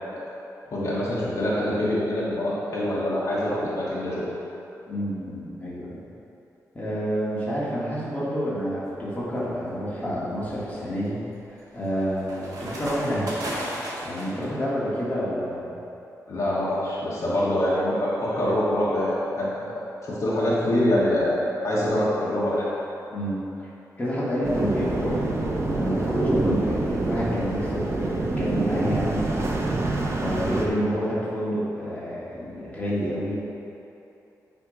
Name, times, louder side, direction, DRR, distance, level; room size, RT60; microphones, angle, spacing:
voice 1, 0.7-4.2 16.3-19.5 20.0-22.7, left 1 dB, 55° left, -8 dB, 1.4 m, -25 dB
voice 2, 4.9-6.0 6.7-11.2 11.5-13.3 14.0-15.7 23.1-23.4 24.0-25.3 25.6-33.3, equal, 25° left, -9 dB, 1.7 m, -29 dB
sound 1, 8.9-9.3 9.8-14.5, right 1 dB, 65° right, 1.5 m, -36 dB
sound 2, 24.4-30.7, right 2 dB, 45° right, 0.8 m, -26 dB
9.4 x 3.5 x 4.9 m, 3.0 s
wide cardioid pair, 150°, 6 cm